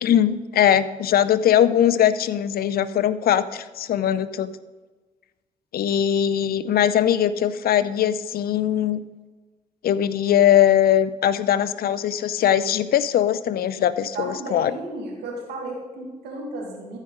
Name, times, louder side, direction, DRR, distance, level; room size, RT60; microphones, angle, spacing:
voice 1, 0.0-4.5 5.7-9.0 9.8-14.7, left 10 dB, 65° left, 15 dB, 0.5 m, -20 dB
voice 2, 14.1-17.0, right 2 dB, 80° right, -1 dB, 2.2 m, -33 dB
14.5 x 5.4 x 3.8 m, 1.3 s
hypercardioid pair, 50°, 17 cm